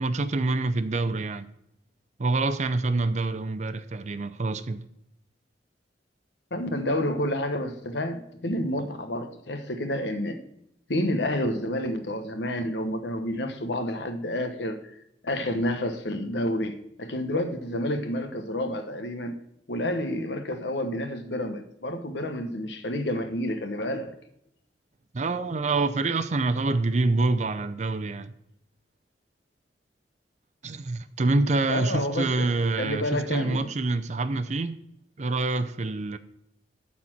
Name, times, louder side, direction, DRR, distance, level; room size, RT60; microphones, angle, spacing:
voice 1, 0.0-1.5 2.2-4.8 25.1-28.3 30.6-34.8 35.2-36.2, right 3 dB, 40° right, 0.5 m, -26 dB
voice 2, 6.5-10.4 10.9-15.0 15.2-19.4 19.7-24.2 31.7-32.5 32.8-33.7, left 1 dB, 80° left, 1.1 m, -29 dB
12.0 x 4.3 x 7.3 m
head